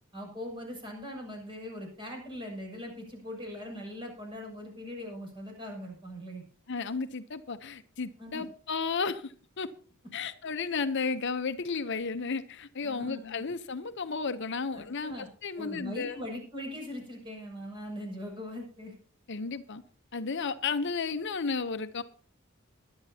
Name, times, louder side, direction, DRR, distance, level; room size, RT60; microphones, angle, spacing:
voice 1, 0.1-6.4 8.2-8.4 12.8-13.4 14.7-15.3 15.6-18.9, left 1 dB, 25° right, 7.0 m, -41 dB
voice 2, 6.7-9.7 10.1-16.2 19.3-19.8 20.1-22.0, left 4 dB, 60° left, 0.8 m, -33 dB
21.5 x 11.5 x 2.8 m
head